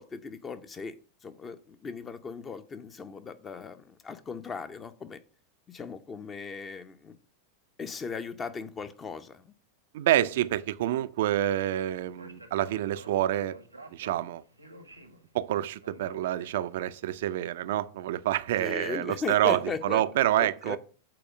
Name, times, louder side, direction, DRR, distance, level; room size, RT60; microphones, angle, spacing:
voice 1, 0.0-5.2 5.7-7.2 7.8-9.5 18.6-20.0 20.4-20.8, left 5 dB, 20° left, 0.6 m, -38 dB
voice 2, 9.9-13.6 13.9-14.4 15.3-20.8, right 13 dB, 55° right, 0.4 m, -27 dB
Speech, 12.0-17.0, right 2 dB, 85° right, 0.9 m, -50 dB
7.7 x 4.2 x 4.9 m
figure-of-eight pair, 90°, 0 cm